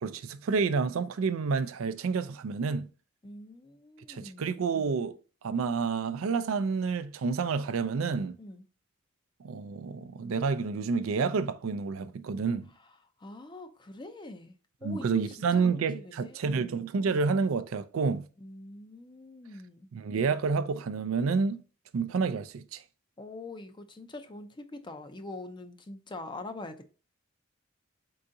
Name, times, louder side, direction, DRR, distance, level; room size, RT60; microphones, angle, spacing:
voice 1, 0.0-2.9 4.1-5.2 5.4-8.4 9.4-12.7 14.8-18.3 19.9-21.6 21.9-22.8, right 5 dB, 80° right, 0.4 m, -29 dB
voice 2, 3.2-4.4 8.4-8.7 12.7-16.8 18.4-19.9 23.2-26.9, left 2 dB, 25° left, 0.5 m, -44 dB
4.6 x 3.8 x 2.6 m
head